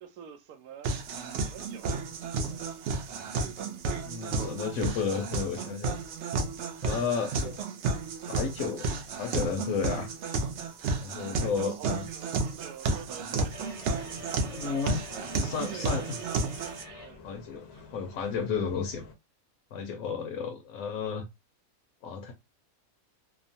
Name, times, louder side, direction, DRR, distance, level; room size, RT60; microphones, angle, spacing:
voice 1, 0.0-1.1 1.4-2.0 2.5-2.7 4.0-4.9 10.8-13.7 15.5-16.4 17.0-17.3 17.7-17.9, right 8 dB, 85° right, 1.1 m, -47 dB
sound 1, 0.8-16.8, right 3 dB, 65° right, 0.7 m, -32 dB
voice 2, 4.1-6.0 6.8-7.6 8.3-8.9 9.2-10.1 11.0-12.0 14.5-16.2 17.2-19.1 19.7-21.2 22.0-22.3, left 6 dB, 75° left, 1.0 m, -33 dB
Bus, 13.3-19.2, left 4 dB, 60° left, 0.8 m, -51 dB
sound 2, 13.5-17.1, right 2 dB, 35° right, 1.0 m, -46 dB
2.9 x 2.0 x 2.6 m
omnidirectional pair, 1.5 m